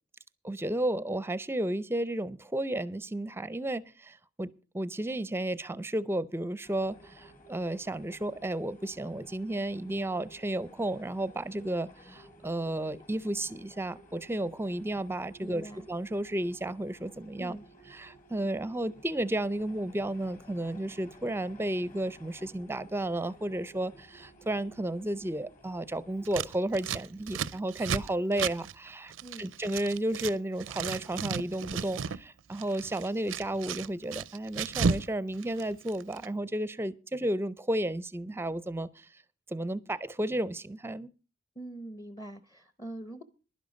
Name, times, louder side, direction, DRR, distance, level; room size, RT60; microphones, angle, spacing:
voice 1, 0.4-17.6 18.0-29.1 29.4-39.1 39.5-41.1, right 1 dB, 10° right, 0.5 m, -33 dB
sound 1, 6.6-26.3, equal, 45° left, 3.0 m, -55 dB
voice 2, 15.4-15.9 17.4-17.7 29.2-29.5 41.6-43.2, right 1 dB, 20° left, 0.8 m, -43 dB
Scissors, 26.2-30.3 30.6-32.2 32.5-35.1 35.3-36.3, right 6 dB, 85° right, 0.5 m, -34 dB
11.5 x 10.5 x 5.2 m
head